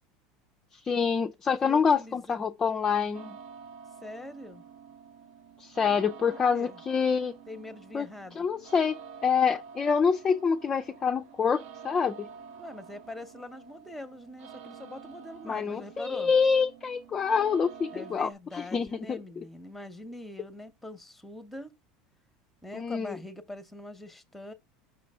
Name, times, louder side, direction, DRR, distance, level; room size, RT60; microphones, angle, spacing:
voice 1, 0.7-3.4 5.6-7.4 7.9-8.1 8.3-12.3 15.5-19.4 22.7-23.2, left 6 dB, 20° left, 0.3 m, -27 dB
voice 2, 1.6-2.4 4.0-4.6 6.3-6.8 7.5-8.5 12.6-16.3 17.9-21.8 22.6-24.5, left 1 dB, 5° left, 0.8 m, -43 dB
sound 1, 3.1-18.3, right 7 dB, 60° right, 0.8 m, -48 dB
6.0 x 3.2 x 5.3 m
supercardioid pair, 140°, 3 cm